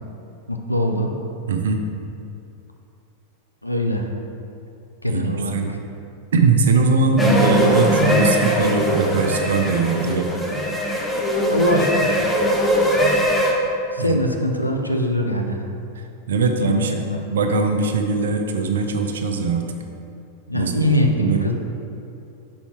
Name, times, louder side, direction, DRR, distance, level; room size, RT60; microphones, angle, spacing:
voice 1, 0.5-1.1 3.6-4.1 5.0-5.8 11.4-12.1 13.9-15.6 16.6-17.2 20.5-21.5, left 1 dB, 85° left, 3 dB, 0.4 m, -22 dB
voice 2, 1.5-1.8 5.1-5.7 6.3-10.3 14.0-14.2 16.3-19.6 20.5-20.9 21.2-21.5, right 4 dB, 65° right, 4 dB, 0.4 m, -21 dB
sound 1, 7.2-13.5, equal, 10° left, 0.7 m, -20 dB
5.5 x 4.2 x 4.3 m, 2.6 s
figure-of-eight pair, 90°, 0 cm